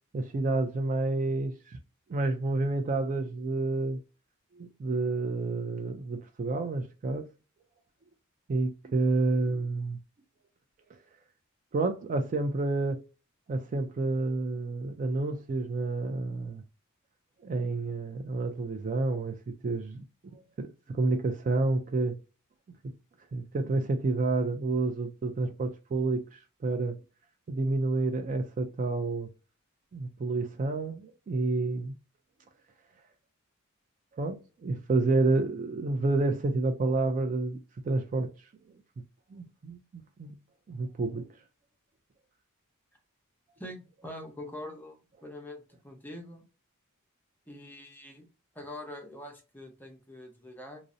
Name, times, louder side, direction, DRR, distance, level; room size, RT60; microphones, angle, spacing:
voice 1, 0.1-1.8 2.1-4.0 4.6-7.2 8.5-10.0 11.7-13.0 13.5-16.6 17.4-20.0 20.3-22.2 23.3-27.0 27.5-29.3 29.9-31.9 34.1-37.6 37.8-38.3 39.3-40.3 40.7-41.3, right 3 dB, 35° right, 0.3 m, -29 dB
voice 2, 43.6-46.4 47.5-48.2 48.5-50.8, left 1 dB, 10° left, 0.6 m, -44 dB
2.5 x 2.0 x 2.5 m
head